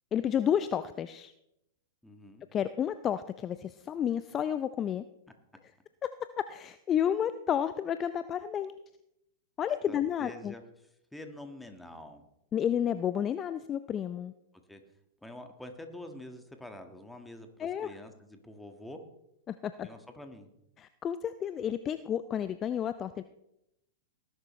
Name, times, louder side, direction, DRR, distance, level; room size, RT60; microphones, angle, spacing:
voice 1, 0.1-1.3 2.5-5.0 6.4-8.7 9.6-10.5 12.5-14.3 17.6-17.9 19.5-19.9 20.8-23.2, left 9 dB, 25° left, 13 dB, 0.5 m, -31 dB
voice 2, 2.0-2.4 9.9-10.6 11.1-12.2 14.7-14.8 15.2-19.0 19.8-20.5, left 1 dB, 5° left, 6 dB, 1.6 m, -46 dB
19.0 x 11.0 x 3.2 m, 0.84 s
figure-of-eight pair, 100°, 0 cm